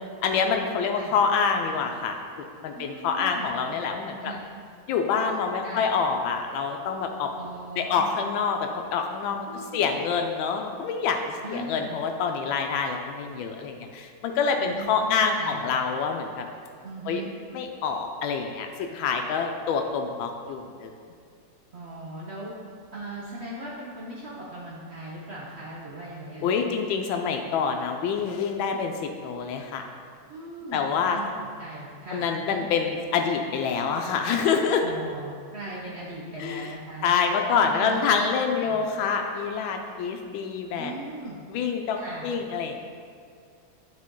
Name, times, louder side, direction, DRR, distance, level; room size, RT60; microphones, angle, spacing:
voice 1, 0.0-2.2 2.6-4.3 4.9-7.3 7.8-9.5 9.7-16.4 17.1-17.2 17.5-20.9 26.4-29.8 30.7-31.2 32.1-34.8 36.4-36.7 37.0-40.9 41.5-42.8, left 6 dB, 90° left, 4 dB, 1.3 m, -26 dB
voice 2, 2.7-3.6 4.2-4.4 5.6-5.9 7.3-8.1 9.5-10.0 11.4-11.8 14.6-15.9 16.8-17.3 21.7-22.5 22.9-26.5 30.3-31.3 31.6-32.7 34.8-37.0 37.6-38.1 38.6-38.8 40.8-41.4 41.9-42.3, right 2 dB, 55° right, -5 dB, 0.7 m, -39 dB
9.6 x 3.9 x 3.7 m, 2.2 s
omnidirectional pair, 2.1 m